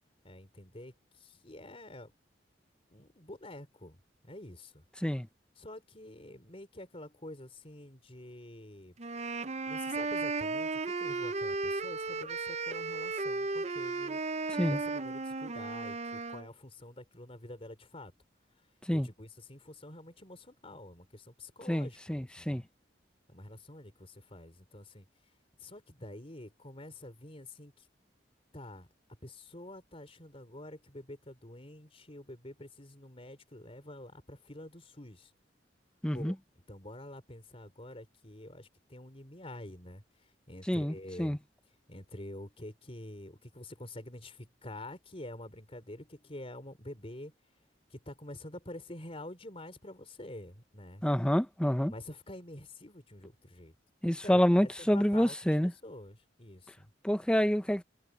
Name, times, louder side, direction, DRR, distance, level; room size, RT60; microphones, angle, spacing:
voice 1, 0.2-2.1 2.9-4.0 4.2-4.8 5.6-8.9 9.7-14.2 14.6-18.1 18.9-22.6 23.3-25.1 25.6-27.9 28.5-28.9 29.2-35.3 36.1-36.4 36.7-41.4 41.9-47.3 47.9-51.1 51.9-53.7 54.2-56.9, left 1 dB, 30° left, 4.2 m, -47 dB
sound 1, 9.0-16.5, right 3 dB, 35° right, 0.6 m, -35 dB
voice 2, 21.7-22.6 36.0-36.3 40.7-41.4 51.0-51.9 54.0-55.7 57.0-57.8, equal, 5° left, 0.9 m, -27 dB
head